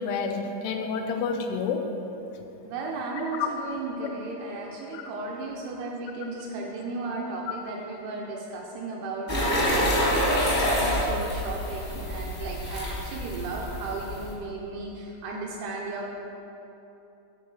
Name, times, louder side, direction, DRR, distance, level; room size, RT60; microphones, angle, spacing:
voice 1, 0.0-1.8 3.2-3.5 4.9-5.0, left 5 dB, 85° left, 4 dB, 3.1 m, -29 dB
voice 2, 2.6-16.1, right 3 dB, 90° right, -1 dB, 2.3 m, -35 dB
sound 1, 9.3-14.3, equal, 50° left, 0.7 m, -27 dB
9.8 x 4.6 x 6.4 m, 3.0 s
omnidirectional pair, 5.4 m